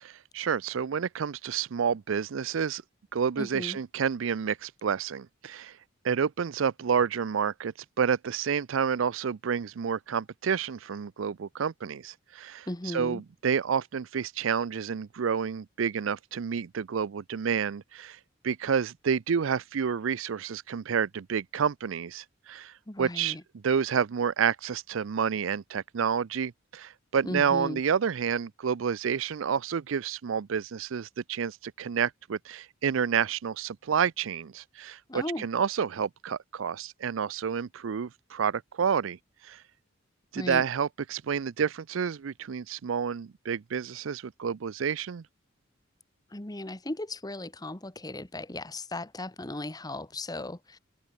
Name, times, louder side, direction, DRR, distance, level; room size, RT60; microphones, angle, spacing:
voice 1, 0.3-2.8 3.1-5.8 6.0-23.4 23.6-39.2 39.4-39.6 40.3-45.2, right 7 dB, 70° right, 0.5 m, -29 dB
voice 2, 3.4-3.8 12.7-13.2 22.9-23.4 27.2-27.8 35.1-35.5 40.3-40.6 46.3-50.8, left 1 dB, 20° left, 1.3 m, -36 dB
head